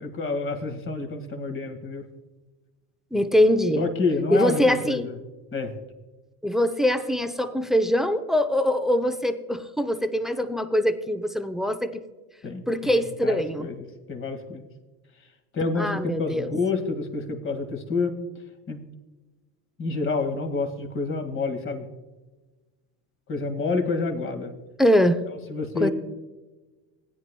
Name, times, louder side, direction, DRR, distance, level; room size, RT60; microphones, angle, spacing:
voice 1, 0.0-2.0 3.8-5.1 5.5-5.7 12.4-14.7 15.5-18.1 18.7-18.8 19.8-21.9 23.3-24.5 25.5-25.9, left 3 dB, 35° left, 5 dB, 1.9 m, -28 dB
voice 2, 3.1-3.9 4.3-5.1 6.4-12.0 12.7-13.7 15.8-16.5 24.8-25.2 25.8-25.9, equal, ahead, 9 dB, 0.6 m, -23 dB
17.0 x 9.8 x 2.2 m, 1.2 s
supercardioid pair, 100°, 38 cm